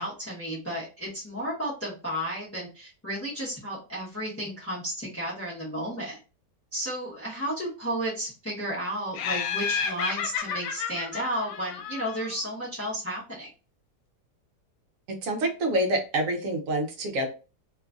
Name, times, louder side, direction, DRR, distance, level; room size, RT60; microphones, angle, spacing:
voice 1, 0.0-6.2 6.7-13.5, equal, 15° left, -7 dB, 0.5 m, -33 dB
Laughter, 9.1-12.5, left 6 dB, 80° left, 1.2 m, -31 dB
voice 2, 15.1-17.3, right 1 dB, 60° right, 3 dB, 0.9 m, -27 dB
3.0 x 2.5 x 2.3 m, 0.33 s
omnidirectional pair, 1.8 m